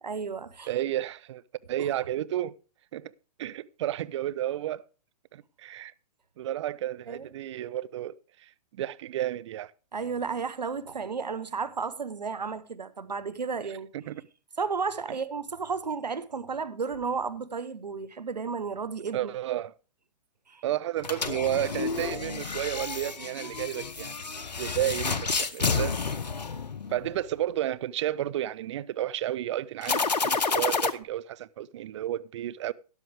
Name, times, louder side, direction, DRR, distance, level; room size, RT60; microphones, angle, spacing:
voice 1, 0.0-0.7 1.8-1.9 7.1-7.3 9.9-13.9 14.6-19.3 20.5-20.6, right 5 dB, 85° right, 1.2 m, -33 dB
voice 2, 0.7-1.4 1.7-2.6 2.9-3.1 3.4-4.9 5.3-5.9 6.4-9.7 13.9-14.2 19.1-19.7 20.6-24.3 24.6-25.9 26.9-32.7, right 12 dB, 45° right, 0.6 m, -32 dB
sound 1, 21.0-27.2 29.8-30.9, left 4 dB, 85° left, 1.0 m, -30 dB
13.0 x 11.0 x 3.5 m
figure-of-eight pair, 125°, 21 cm